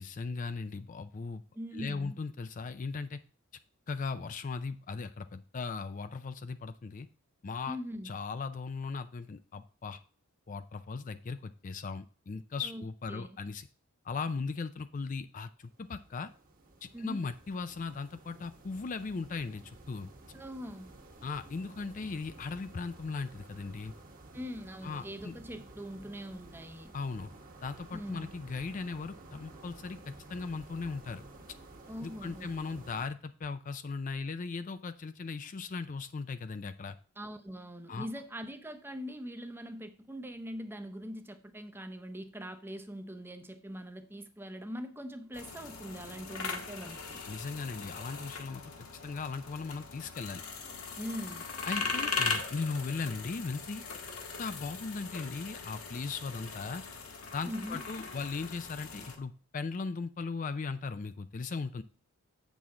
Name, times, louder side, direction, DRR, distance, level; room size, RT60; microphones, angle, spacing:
voice 1, 0.0-1.4 1.7-3.2 3.9-7.1 7.4-7.8 8.0-10.0 10.5-13.7 14.0-16.3 16.8-20.1 21.2-23.9 24.8-25.4 26.9-27.3 27.6-31.2 32.0-37.0 37.9-38.1 47.3-50.4 51.7-53.9 54.4-56.8 57.3-61.8, left 4 dB, 35° left, 0.4 m, -38 dB
voice 2, 1.5-2.2 7.7-8.1 12.6-13.4 16.9-17.2 20.3-20.9 24.3-26.9 27.9-28.3 31.9-32.5 37.2-47.2 51.0-51.5 57.5-57.8, equal, 10° right, 0.7 m, -42 dB
sound 1, 15.6-33.1, right 2 dB, 40° right, 1.3 m, -53 dB
sound 2, 45.3-59.2, left 4 dB, 85° left, 1.6 m, -39 dB
8.3 x 6.1 x 3.7 m
head